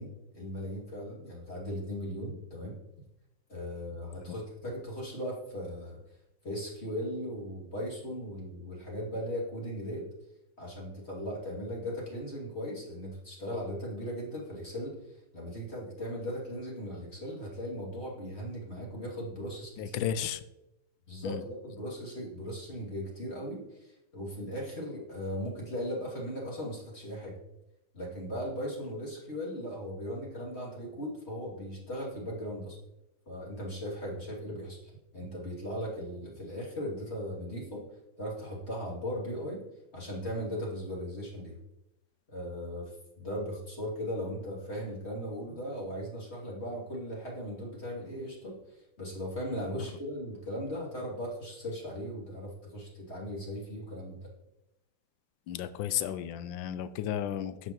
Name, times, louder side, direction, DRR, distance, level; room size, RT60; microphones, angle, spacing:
voice 1, 0.0-2.8 3.5-6.0 6.4-10.0 10.6-15.0 15.3-20.0 21.1-27.3 27.9-32.8 33.3-34.8 35.1-37.8 38.2-39.6 39.9-41.6 42.3-54.3, equal, 35° left, -4 dB, 2.9 m, -38 dB
voice 2, 19.8-20.4 21.2-21.4 55.5-57.7, left 10 dB, 85° left, 14 dB, 1.3 m, -33 dB
11.0 x 8.1 x 3.0 m, 0.90 s
omnidirectional pair, 2.0 m